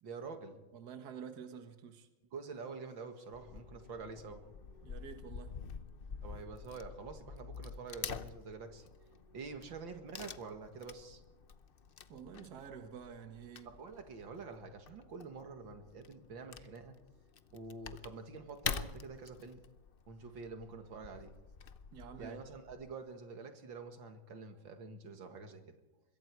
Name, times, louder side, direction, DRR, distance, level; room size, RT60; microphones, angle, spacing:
voice 1, 0.0-0.6 2.3-5.1 6.2-11.2 13.7-16.9 17.5-19.6 20.1-21.3 22.2-25.6, right 4 dB, 75° right, 6 dB, 2.5 m, -47 dB
voice 2, 0.7-2.1 4.8-5.5 12.1-13.7 21.9-22.4, right 7 dB, 55° right, 7 dB, 1.9 m, -49 dB
Wood / Tearing, 3.3-22.9, left 6 dB, 85° left, 0.4 m, -47 dB
25.0 x 22.0 x 4.7 m, 1.1 s
omnidirectional pair, 2.1 m